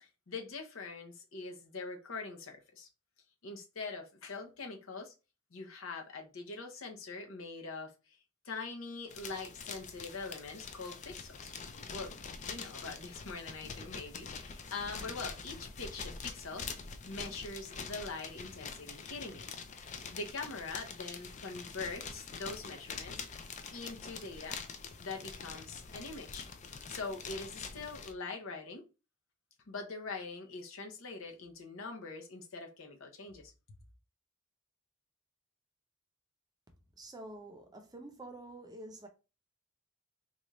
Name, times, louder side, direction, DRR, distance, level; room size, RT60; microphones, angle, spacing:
voice 1, 0.0-2.9 3.4-5.1 5.5-8.2 8.4-11.5 11.9-12.1 12.4-16.7 17.1-19.5 20.1-23.2 23.7-24.6 25.0-26.5 26.9-28.8 29.7-33.5, left 3 dB, 65° left, 0.8 m, -43 dB
sound 1, 9.1-28.1, left 5 dB, 35° left, 0.3 m, -45 dB
voice 2, 37.0-39.1, right 2 dB, 20° right, 0.6 m, -48 dB
4.0 x 2.4 x 3.1 m
head